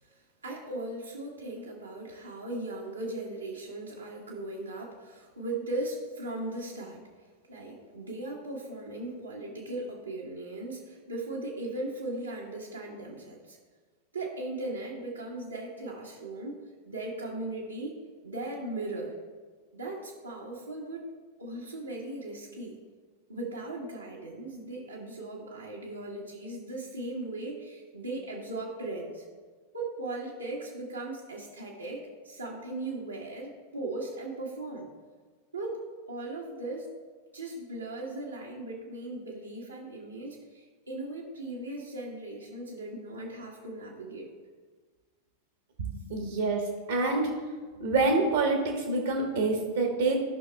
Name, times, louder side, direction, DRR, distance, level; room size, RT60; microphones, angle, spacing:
voice 1, 0.1-7.0 7.5-13.6 14.1-16.6 16.8-17.9 18.2-19.1 19.7-21.0 21.4-22.8 23.3-29.2 29.7-34.9 35.5-36.9 37.3-44.3, right 2 dB, 80° right, -4 dB, 1.3 m, -38 dB
voice 2, 46.1-46.6 46.9-47.3 47.8-50.1, right 3 dB, 60° right, 1 dB, 1.2 m, -26 dB
13.5 x 5.8 x 2.2 m, 1.5 s
figure-of-eight pair, 90°, 0 cm